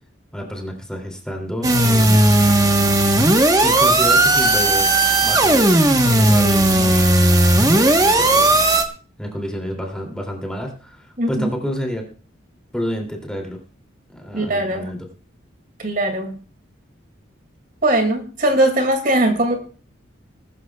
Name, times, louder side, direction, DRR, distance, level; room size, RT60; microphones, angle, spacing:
voice 1, 0.3-2.3 3.6-4.9 5.2-5.7 6.0-7.0 7.6-8.6 9.2-12.1 12.7-13.6 14.1-15.0, equal, 5° left, 2 dB, 2.7 m, -29 dB
sound 1, 1.6-8.8, right 1 dB, 20° right, 1.1 m, -15 dB
voice 2, 11.2-11.5 14.3-14.9 15.8-16.3 17.8-19.6, right 1 dB, 45° right, 5 dB, 2.3 m, -20 dB
20.5 x 13.5 x 2.3 m, 0.37 s
head